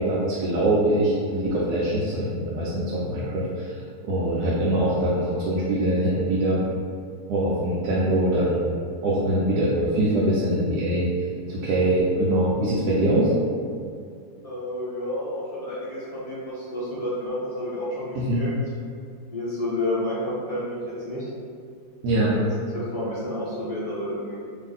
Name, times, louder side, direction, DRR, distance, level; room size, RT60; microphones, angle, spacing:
voice 1, 0.0-6.6 7.3-8.7 9.0-11.1 11.5-13.3 18.1-18.4 22.0-22.3, right 1 dB, 85° right, -6 dB, 1.1 m, -23 dB
voice 2, 14.4-18.5 19.3-21.3 22.7-24.3, left 1 dB, 35° left, -11 dB, 0.6 m, -30 dB
2.8 x 2.5 x 3.8 m, 2.2 s
omnidirectional pair, 1.6 m